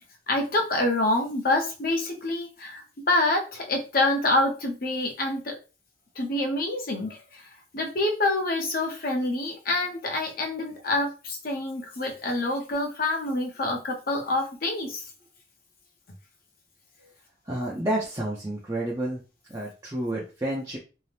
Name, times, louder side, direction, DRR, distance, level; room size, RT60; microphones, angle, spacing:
voice 1, 0.3-5.5 6.2-7.4 7.7-15.0, left 2 dB, 55° left, 2 dB, 0.7 m, -26 dB
voice 2, 17.5-19.2 19.5-20.8, right 1 dB, 20° right, -5 dB, 0.5 m, -30 dB
2.7 x 2.0 x 3.2 m, 0.33 s
head